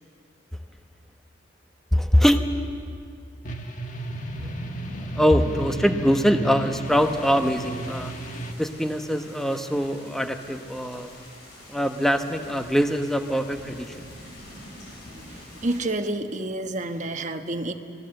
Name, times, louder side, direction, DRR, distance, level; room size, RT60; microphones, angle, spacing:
voice 1, 1.9-2.4 4.4-4.5 5.1-8.1 8.6-11.1 11.7-14.1, equal, ahead, 6 dB, 1.0 m, -23 dB
sound 1, 3.4-8.5, right 1 dB, 40° left, 1.7 m, -34 dB
sound 2, 6.8-15.8, left 1 dB, 60° left, 7.8 m, -46 dB
voice 2, 14.9-17.7, right 2 dB, 40° right, 6 dB, 1.2 m, -30 dB
26.5 x 19.0 x 7.8 m, 2.3 s
head